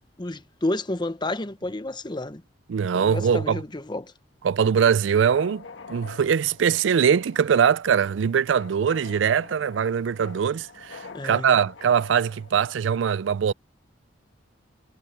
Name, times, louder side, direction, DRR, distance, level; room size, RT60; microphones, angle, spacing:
voice 1, 0.2-2.4 2.9-4.1 11.1-11.6, left 2 dB, 25° left, 0.9 m, -30 dB
voice 2, 2.7-3.6 4.4-13.5, right 7 dB, 80° right, 0.4 m, -22 dB
sound 1, 4.6-12.8, left 4 dB, 75° left, 1.6 m, -46 dB
head